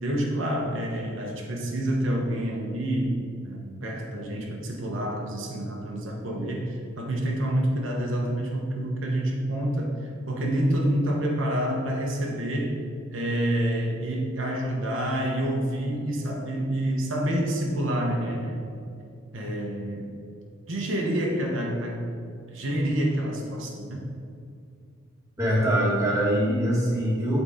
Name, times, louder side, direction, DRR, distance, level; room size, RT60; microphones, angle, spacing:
voice 1, 0.0-3.1 3.4-12.8 13.1-18.8 19.3-20.1 20.7-22.1 22.5-24.0, right 1 dB, 80° right, -1 dB, 1.0 m, -28 dB
voice 2, 25.4-27.4, equal, 15° right, -7 dB, 1.7 m, -23 dB
7.8 x 4.1 x 4.9 m, 2.4 s
head